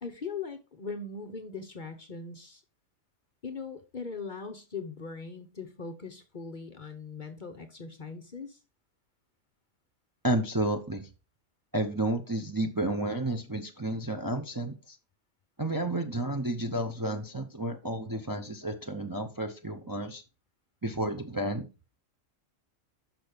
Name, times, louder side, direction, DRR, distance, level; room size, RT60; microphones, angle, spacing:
voice 1, 0.0-2.6 3.4-8.6, left 4 dB, 45° left, 8 dB, 0.9 m, -40 dB
voice 2, 10.2-11.1 11.7-15.0 15.6-20.2 20.8-21.7, right 1 dB, 20° right, 4 dB, 0.7 m, -31 dB
6.3 x 6.1 x 5.1 m, 0.31 s
omnidirectional pair, 1.3 m